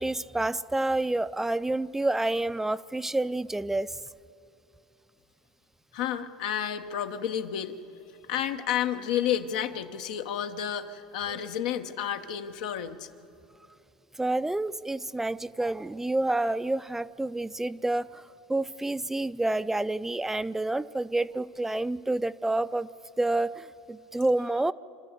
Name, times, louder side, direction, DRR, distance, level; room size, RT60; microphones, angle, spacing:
voice 1, 0.0-4.0 14.2-22.9 23.2-24.7, right 2 dB, 10° right, 15 dB, 0.4 m, -28 dB
voice 2, 5.9-7.8 8.3-13.1, left 9 dB, 80° left, 7 dB, 1.0 m, -31 dB
26.5 x 13.0 x 8.0 m, 2.8 s
hypercardioid pair, 95°, 4 cm